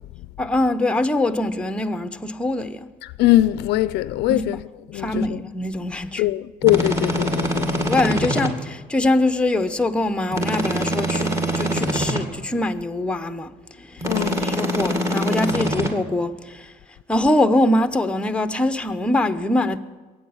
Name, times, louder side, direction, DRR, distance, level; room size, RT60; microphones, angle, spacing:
voice 1, 0.4-2.9 4.3-4.4 4.9-6.2 7.9-14.1 14.4-16.7 17.1-19.8, left 1 dB, 5° left, 0.8 m, -23 dB
voice 2, 3.0-4.6 4.9-5.4 6.2-7.9 14.0-14.4, left 15 dB, 85° left, 0.5 m, -21 dB
sound 1, 6.6-8.5 10.3-12.2 14.0-15.9, equal, 15° right, 2.1 m, -24 dB
22.0 x 8.8 x 7.1 m
cardioid pair, 110°, 17 cm